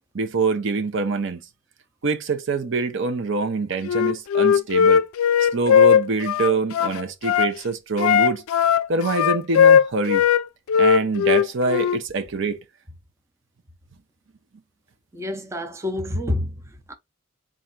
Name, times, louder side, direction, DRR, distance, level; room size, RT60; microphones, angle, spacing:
voice 1, 0.1-1.4 2.0-5.0 5.4-8.4 8.9-10.2 10.8-12.6, right 3 dB, 60° right, 0.7 m, -25 dB
Wind instrument woodwind instrument, 3.8-7.5 8.0-10.4 10.7-12.0, left 8 dB, 85° left, 0.3 m, -18 dB
voice 2, 15.1-16.9, left 1 dB, 15° right, 0.6 m, -28 dB
4.4 x 2.5 x 3.8 m
head